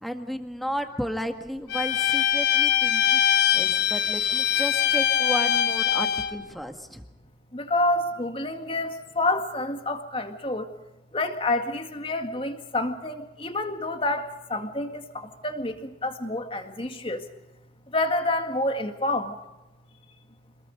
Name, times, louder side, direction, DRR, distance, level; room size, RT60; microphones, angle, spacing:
voice 1, 0.0-3.2 3.5-7.0, equal, ahead, 5 dB, 1.7 m, -33 dB
Bowed string instrument, 1.7-6.3, left 10 dB, 80° left, 2.5 m, -22 dB
voice 2, 7.5-10.7 11.1-17.3 17.9-19.4, left 2 dB, 30° left, 6 dB, 2.0 m, -28 dB
27.0 x 21.0 x 5.2 m, 1.0 s
head